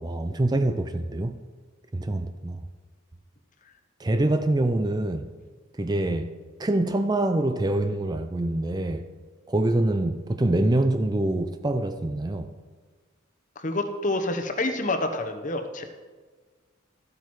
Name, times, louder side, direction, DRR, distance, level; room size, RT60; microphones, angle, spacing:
voice 1, 0.0-1.4 1.9-2.7 4.0-5.3 5.7-6.3 6.6-9.1 9.5-12.5, right 1 dB, 20° right, 0.4 m, -25 dB
voice 2, 13.6-15.8, left 2 dB, 40° left, 1.0 m, -28 dB
13.5 x 8.5 x 4.7 m
head